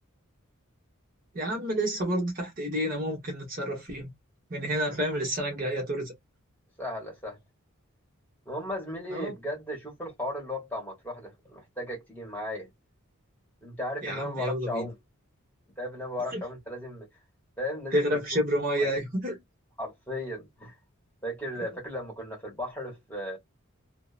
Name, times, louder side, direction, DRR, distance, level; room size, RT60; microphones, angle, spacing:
voice 1, 1.3-4.1 4.5-6.1 9.1-9.3 14.0-14.9 16.3-16.4 17.9-19.4 21.6-21.7, equal, 40° right, 1.0 m, -29 dB
voice 2, 6.8-7.4 8.4-12.7 13.6-15.0 15.8-17.1 17.6-18.0 18.8-18.9 19.8-20.8 21.2-23.4, left 1 dB, 10° left, 1.3 m, -36 dB
2.7 x 2.1 x 2.4 m
head